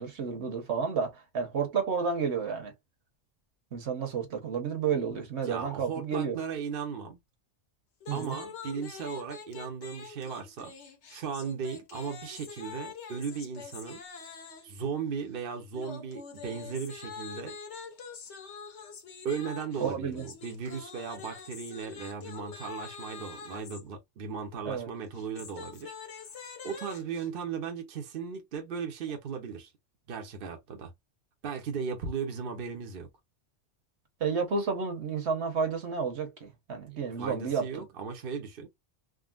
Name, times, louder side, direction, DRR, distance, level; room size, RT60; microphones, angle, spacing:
voice 1, 0.0-2.7 3.7-6.4 8.1-8.4 19.8-20.3 24.6-24.9 34.2-37.8, right 6 dB, 75° right, 1.2 m, -31 dB
voice 2, 4.9-7.2 8.1-10.7 11.1-14.0 14.6-17.6 19.2-25.9 26.6-29.7 30.1-30.9 31.4-33.1 37.2-38.7, right 6 dB, 55° right, 0.9 m, -37 dB
sound 1, 8.0-14.8 15.7-23.8 25.0-27.3, left 6 dB, 75° left, 1.2 m, -45 dB
3.6 x 2.1 x 2.3 m
omnidirectional pair, 1.2 m